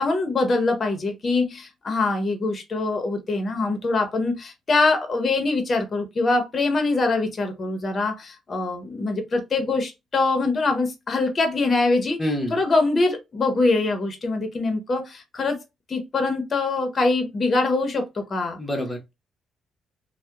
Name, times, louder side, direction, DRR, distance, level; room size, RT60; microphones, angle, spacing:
voice 1, 0.0-15.6 15.9-18.6, left 3 dB, 40° left, 0.8 m, -23 dB
voice 2, 12.2-12.6 18.6-19.1, left 1 dB, 5° left, 1.0 m, -27 dB
2.7 x 2.1 x 2.3 m
cardioid pair, 90°, 0 cm